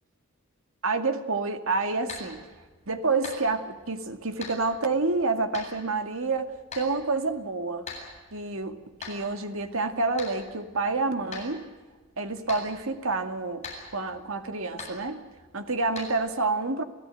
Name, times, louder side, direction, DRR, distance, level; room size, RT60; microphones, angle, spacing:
voice 1, 0.8-2.4 2.9-7.9 8.3-11.7 12.2-13.7 13.9-15.2 15.5-16.8, right 3 dB, 70° right, 7 dB, 2.1 m, -28 dB
sound 1, 1.7-16.3, left 3 dB, 30° left, 7.9 m, -45 dB
28.5 x 16.0 x 9.1 m, 1.4 s
head